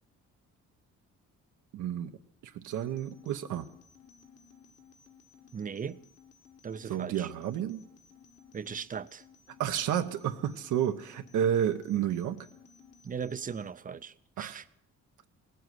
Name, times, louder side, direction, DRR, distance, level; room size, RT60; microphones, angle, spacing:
voice 1, 1.7-2.1 2.5-3.7 6.9-7.8 9.6-12.5 14.4-14.6, right 10 dB, 80° right, 0.8 m, -30 dB
sound 1, 2.7-13.7, left 6 dB, 50° left, 1.4 m, -58 dB
voice 2, 5.5-6.0 6.6-7.3 8.5-9.2 13.0-14.7, right 6 dB, 30° right, 0.5 m, -38 dB
18.0 x 7.8 x 7.8 m
cardioid pair, 90°, 30 cm